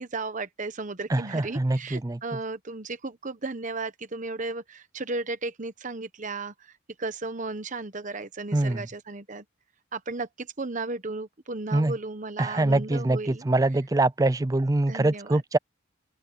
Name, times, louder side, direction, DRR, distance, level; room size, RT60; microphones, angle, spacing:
voice 1, 0.0-6.5 7.0-9.4 9.9-13.4 14.9-15.4, right 3 dB, 40° right, 1.1 m, -34 dB
voice 2, 1.1-2.2 8.5-8.9 11.7-11.9 12.4-15.6, right 2 dB, 15° right, 0.4 m, -24 dB
open air
head